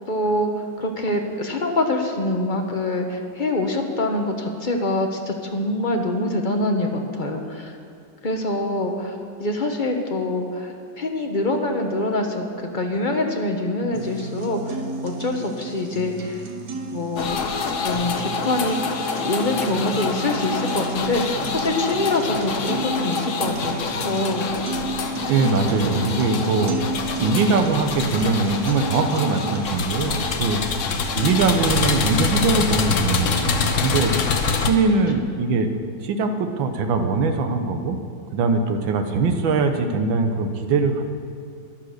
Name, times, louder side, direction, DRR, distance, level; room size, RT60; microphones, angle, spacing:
voice 1, 0.1-7.7 8.2-9.1 9.4-16.4 16.9-17.4 17.8-24.5, left 2 dB, 35° left, 3 dB, 0.8 m, -25 dB
sound 1, 13.9-29.9, right 3 dB, 55° right, 1.5 m, -32 dB
FP Diesel Tractor Start Run, 17.2-34.7, left 5 dB, 55° left, 1.0 m, -26 dB
voice 2, 25.3-26.8 27.2-30.6 31.1-34.1 34.6-35.7 36.0-38.0 38.3-41.0, right 4 dB, 80° right, 6 dB, 1.7 m, -21 dB
11.0 x 10.5 x 6.5 m, 2.4 s
omnidirectional pair, 2.1 m